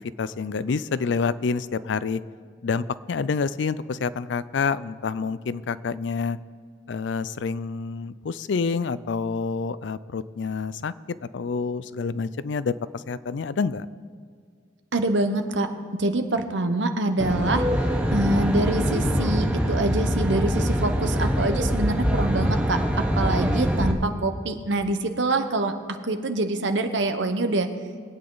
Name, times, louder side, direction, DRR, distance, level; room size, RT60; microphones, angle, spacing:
voice 1, 0.2-2.2 2.6-6.4 6.9-10.9 11.2-13.9, left 5 dB, 70° left, 16 dB, 0.4 m, -28 dB
voice 2, 14.9-15.7 16.0-17.6 18.1-22.8 23.2-25.7 26.1-27.7, right 2 dB, 75° right, 7 dB, 1.0 m, -25 dB
Aircraft, 17.2-23.9, equal, 5° right, 1.0 m, -24 dB
22.5 x 8.8 x 4.0 m, 2.1 s
head